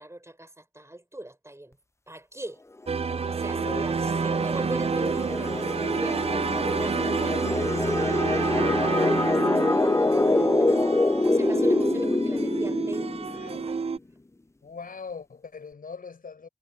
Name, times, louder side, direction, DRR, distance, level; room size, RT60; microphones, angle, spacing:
voice 1, 0.0-1.8 2.1-2.6 3.3-6.3 6.8-13.9, right 1 dB, 20° right, 4.7 m, -41 dB
sound 1, 2.9-14.0, right 5 dB, 45° right, 0.4 m, -29 dB
sound 2, 3.1-13.6, left 2 dB, 20° left, 0.5 m, -26 dB
voice 2, 3.6-4.3 13.3-13.7 14.6-16.5, left 5 dB, 85° left, 5.8 m, -41 dB
cardioid pair, 50°, 14 cm